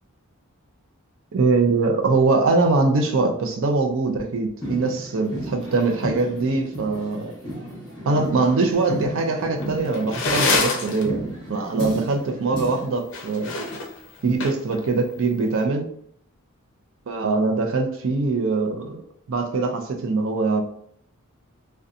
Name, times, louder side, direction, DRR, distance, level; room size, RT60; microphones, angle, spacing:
voice 1, 1.3-7.3 8.0-13.6 14.2-15.9 17.1-19.0 19.3-20.6, right 3 dB, 60° right, 4 dB, 0.4 m, -22 dB
sound 1, 4.6-12.9, equal, 20° left, 0.9 m, -34 dB
sound 2, 9.6-11.0 13.0-14.8, left 3 dB, 55° left, 0.5 m, -25 dB
2.6 x 2.2 x 2.4 m, 0.64 s
head